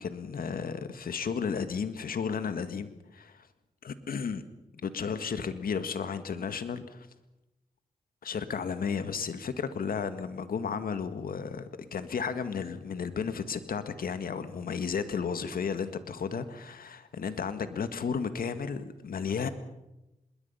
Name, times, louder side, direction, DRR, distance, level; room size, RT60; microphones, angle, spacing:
voice 1, 0.0-3.5 3.8-4.4 4.7-7.1 8.2-19.5, left 6 dB, 70° left, 10 dB, 1.8 m, -33 dB
26.5 x 21.0 x 5.7 m, 0.95 s
supercardioid pair, 45°, 16 cm